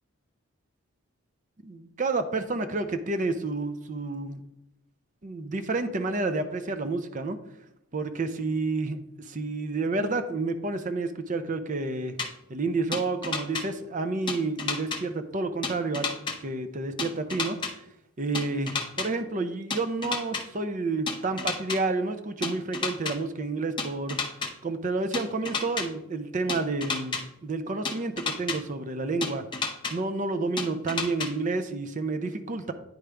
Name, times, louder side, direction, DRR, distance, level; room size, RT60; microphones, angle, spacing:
voice 1, 1.6-4.4 5.2-7.4 7.9-12.2 12.5-17.8 18.2-24.2 24.6-29.5 29.9-32.7, right 3 dB, 35° right, 8 dB, 0.5 m, -30 dB
sound 1, 12.2-12.3 12.9-13.6 14.3-15.0 15.6-16.3 17.0-17.7 18.3-19.1 19.7-20.4 21.1-21.8 22.4-23.1 23.8-24.5 25.1-25.8 26.5-27.2 27.8-28.6 29.2-29.9 30.6-31.3, left 4 dB, 20° left, 0.7 m, -30 dB
9.4 x 5.0 x 3.4 m, 0.85 s
head